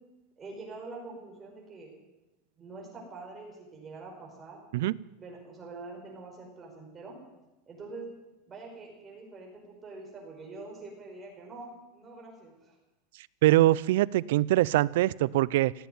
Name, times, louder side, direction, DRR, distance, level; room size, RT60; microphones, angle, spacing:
voice 1, 0.4-1.9 2.6-4.6 5.2-7.2 7.7-8.1 8.5-12.7, right 3 dB, 20° right, 0 dB, 5.3 m, -45 dB
voice 2, 13.4-15.7, right 16 dB, 75° right, 22 dB, 0.4 m, -23 dB
16.0 x 9.1 x 9.4 m, 0.99 s
supercardioid pair, 145°, 0 cm